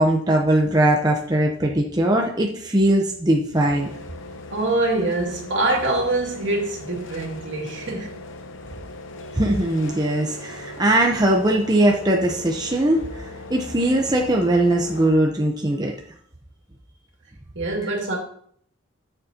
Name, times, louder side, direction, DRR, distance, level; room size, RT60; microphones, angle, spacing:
voice 1, 0.0-3.9 9.3-15.9 17.8-17.9, right 1 dB, 20° right, 0.8 m, -20 dB
sound 1, 3.5-15.1, left 2 dB, 75° left, 0.8 m, -39 dB
voice 2, 4.5-8.1 17.6-18.2, right 2 dB, 65° right, 2.5 m, -24 dB
12.5 x 6.8 x 2.9 m
head